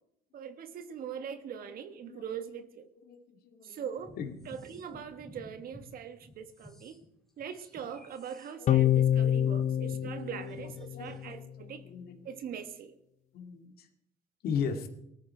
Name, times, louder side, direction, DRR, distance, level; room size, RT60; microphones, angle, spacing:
voice 1, 0.3-2.9 3.6-4.2 4.4-7.0 7.4-11.8 12.2-12.9, right 8 dB, 60° right, 10 dB, 1.5 m, -41 dB
voice 2, 2.0-2.6 3.0-3.2 3.4-3.8 4.2-4.3 8.6-8.7 10.1-10.6 10.9-12.2 13.3-13.9 14.4-14.9, left 6 dB, 65° left, 5 dB, 2.3 m, -38 dB
sound 1, 4.0-5.9 6.2-11.3, left 1 dB, ahead, 4.1 m, -53 dB
sound 2, 8.7-11.3, left 10 dB, 45° left, 0.7 m, -27 dB
19.0 x 13.5 x 4.4 m, 0.78 s
cardioid pair, 110°, 17 cm